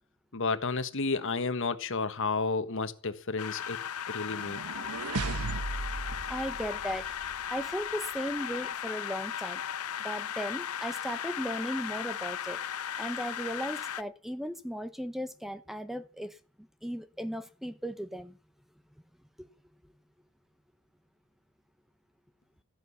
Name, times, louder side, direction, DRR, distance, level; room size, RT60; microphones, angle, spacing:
voice 1, 0.3-3.8 4.1-4.6, left 4 dB, 60° left, 1.4 m, -31 dB
sound 1, 3.4-14.0, left 9 dB, 90° left, 0.7 m, -36 dB
sound 2, 4.3-7.4, right 3 dB, 90° right, 1.2 m, -36 dB
voice 2, 6.3-7.1 7.5-9.6 10.0-12.6 13.0-16.3 16.8-18.3 19.4-19.5, equal, ahead, 0.8 m, -36 dB
14.5 x 10.5 x 7.1 m
head